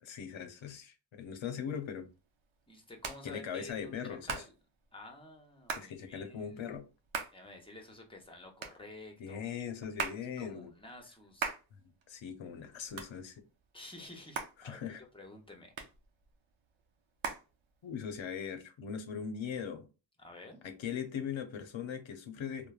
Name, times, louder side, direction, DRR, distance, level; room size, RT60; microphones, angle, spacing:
voice 1, 0.0-2.1 3.2-4.4 5.8-6.9 9.2-10.7 12.1-13.4 14.6-15.0 17.8-19.9 20.6-22.7, left 7 dB, 85° left, 0.6 m, -40 dB
Hands, 1.5-18.2, right 5 dB, 90° right, 0.6 m, -44 dB
voice 2, 2.7-4.5 4.9-6.6 7.3-9.5 10.4-11.5 13.7-14.8 15.1-15.7 20.2-20.6, left 2 dB, 10° left, 0.7 m, -51 dB
3.1 x 2.1 x 2.3 m
wide cardioid pair, 75°, 46 cm